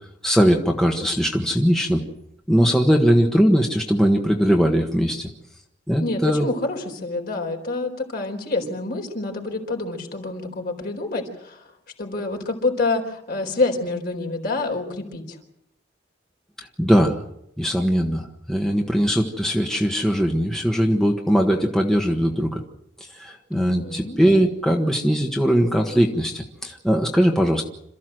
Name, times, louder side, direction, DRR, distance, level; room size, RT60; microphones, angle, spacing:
voice 1, 0.2-2.0 2.5-5.3 5.9-6.5 16.8-17.2 17.6-22.6 23.0-27.7, equal, 5° left, 1 dB, 1.5 m, -20 dB
voice 2, 6.0-11.7 12.0-15.4 23.5-24.2, left 3 dB, 55° left, 3 dB, 4.4 m, -27 dB
27.5 x 14.0 x 7.8 m, 0.79 s
head